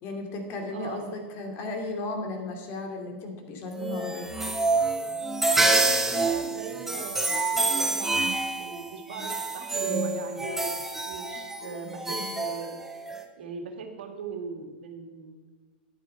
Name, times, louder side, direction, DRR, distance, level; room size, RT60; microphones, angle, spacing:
voice 1, 0.0-4.3, left 2 dB, 45° left, 4 dB, 2.6 m, -35 dB
voice 2, 0.7-1.2 5.5-8.3 8.6-12.7 13.4-15.4, right 5 dB, 80° right, 4 dB, 2.1 m, -39 dB
sound 1, 3.7-13.2, right 2 dB, 5° right, 1.1 m, -27 dB
11.0 x 8.9 x 5.7 m, 1.3 s
hypercardioid pair, 125°, 6 cm